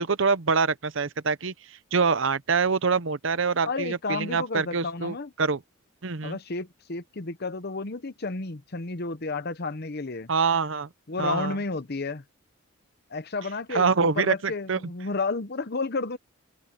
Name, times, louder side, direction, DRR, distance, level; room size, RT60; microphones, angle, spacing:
voice 1, 0.0-1.5 1.9-5.6 6.0-6.4 10.3-10.9 11.2-11.5 13.7-14.8, right 5 dB, 60° right, 0.8 m, -25 dB
voice 2, 3.7-5.3 6.2-10.3 11.1-12.2 13.1-16.2, left 3 dB, 45° left, 0.9 m, -32 dB
open air
head